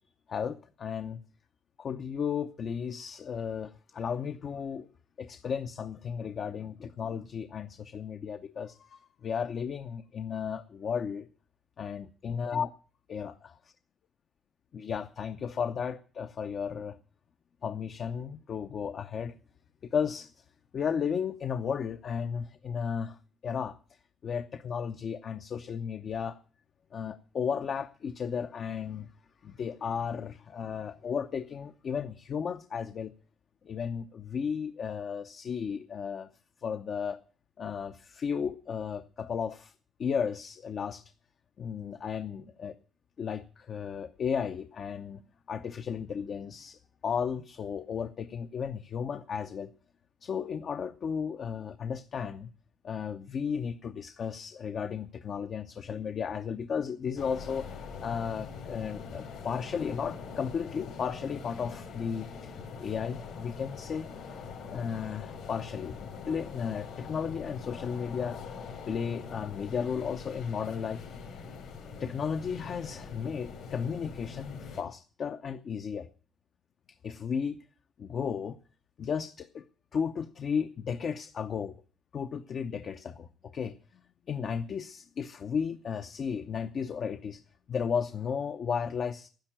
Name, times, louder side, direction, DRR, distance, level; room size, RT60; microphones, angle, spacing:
voice 1, 0.3-1.2 1.8-4.9 5.2-11.3 11.8-12.7 13.1-13.5 14.7-17.0 17.6-19.4 19.8-20.4 20.7-23.2 23.4-23.8 24.2-26.4 26.9-29.1 29.4-33.1 33.6-36.3 36.6-37.2 37.6-39.7 40.0-41.0 41.6-42.7 43.2-45.2 45.5-49.7 50.2-52.5 52.8-57.7 58.0-62.5 62.8-64.1 64.7-68.4 68.9-71.1 72.0-76.1 77.0-77.6 78.0-78.6 79.0-79.6 79.9-81.8 82.1-83.8 84.3-87.4 87.7-89.3, left 7 dB, 55° left, 0.8 m, -34 dB
sound 1, 57.2-74.8, left 5 dB, 80° left, 4.9 m, -43 dB
11.5 x 10.5 x 8.8 m
cardioid pair, 90°, 0 cm